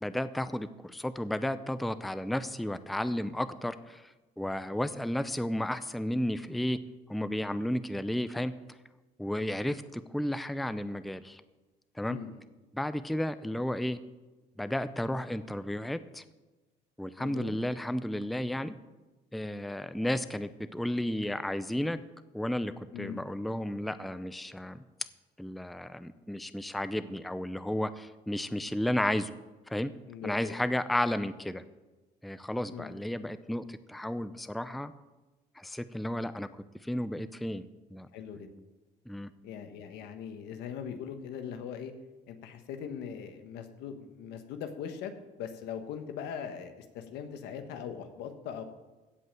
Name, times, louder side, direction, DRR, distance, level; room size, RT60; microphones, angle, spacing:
voice 1, 0.0-6.8 7.1-8.5 9.2-11.4 12.0-12.2 12.7-14.0 14.6-16.2 17.0-18.8 19.3-22.0 22.3-24.8 25.4-29.3 29.7-29.9 30.2-31.6 32.2-34.9 35.6-36.5 36.8-37.6 37.9-38.1 39.1-39.3, left 1 dB, ahead, 13 dB, 0.5 m, -33 dB
voice 2, 12.1-12.4 17.2-17.6 22.9-23.2 30.1-30.5 32.7-32.9 38.1-38.5 39.4-41.9 42.3-45.1 45.4-48.6, left 8 dB, 85° left, 7 dB, 1.4 m, -40 dB
16.0 x 5.3 x 7.6 m, 1.1 s
cardioid pair, 110°, 17 cm